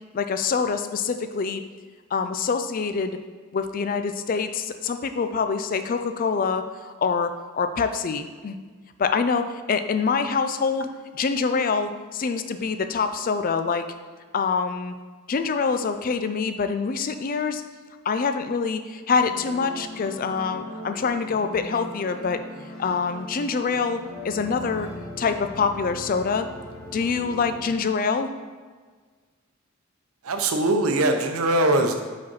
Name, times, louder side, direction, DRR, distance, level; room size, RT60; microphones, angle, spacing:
voice 1, 0.1-1.6 2.1-3.2 3.5-8.6 9.0-10.9 11.1-13.9 14.3-14.9 15.3-17.6 18.0-22.4 22.8-24.9 25.2-26.5 26.9-28.3, left 5 dB, 40° left, 9 dB, 0.3 m, -25 dB
sound 1, 19.2-27.8, equal, 5° left, 1.6 m, -39 dB
voice 2, 30.2-32.0, right 1 dB, 85° right, 6 dB, 0.7 m, -21 dB
5.2 x 4.1 x 5.6 m, 1.5 s
head